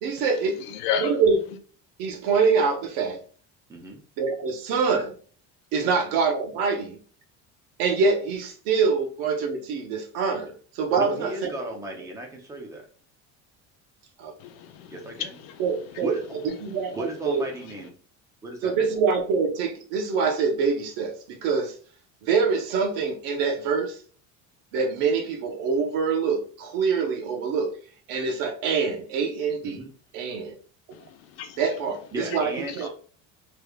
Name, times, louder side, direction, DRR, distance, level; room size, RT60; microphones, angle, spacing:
voice 1, 0.0-0.6 1.0-1.4 2.0-3.2 4.2-5.2 5.7-7.0 7.8-11.5 14.2-14.3 15.6-16.2 16.6-17.4 18.6-21.7 22.2-24.0 24.7-27.7 28.1-29.8 30.1-30.5 31.6-32.9, right 5 dB, 90° right, 0.9 m, -25 dB
voice 2, 0.7-1.2 14.4-16.0 30.9-31.6 32.7-32.9, left 8 dB, 75° left, 0.6 m, -33 dB
voice 3, 11.0-12.9 14.9-15.4 16.0-16.4 16.9-18.0 18.4-18.9 29.6-29.9 32.1-32.9, right 1 dB, 10° right, 0.6 m, -35 dB
3.3 x 3.3 x 2.3 m
cardioid pair, 175°, 33 cm